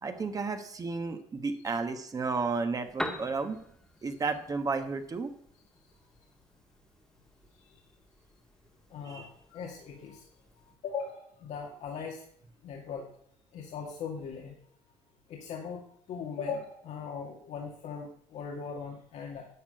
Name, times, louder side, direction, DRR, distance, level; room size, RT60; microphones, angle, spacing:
voice 1, 0.0-3.6 4.0-5.3 9.0-9.3, right 4 dB, 30° right, 7 dB, 1.3 m, -32 dB
Piano, 2.7-10.8, left 1 dB, 5° left, 1.5 m, -45 dB
voice 2, 8.9-10.3 10.8-12.2 12.6-13.0 13.5-14.6 15.3-15.8 16.1-19.5, left 6 dB, 70° left, 0 dB, 2.1 m, -39 dB
11.0 x 6.0 x 8.9 m, 0.65 s
cardioid pair, 120°, 12 cm